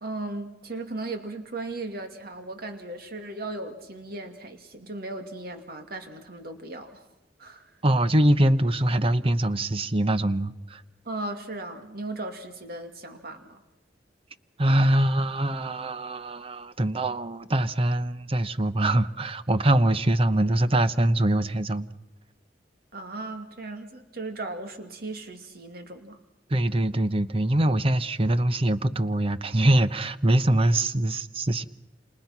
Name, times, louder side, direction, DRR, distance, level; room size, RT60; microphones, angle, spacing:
voice 1, 0.0-7.0 7.4-7.7 11.0-13.6 22.9-26.2, right 2 dB, 55° right, 2.5 m, -37 dB
voice 2, 7.8-10.8 14.6-21.9 26.5-31.6, right 1 dB, 30° right, 0.9 m, -23 dB
28.5 x 28.0 x 6.0 m
head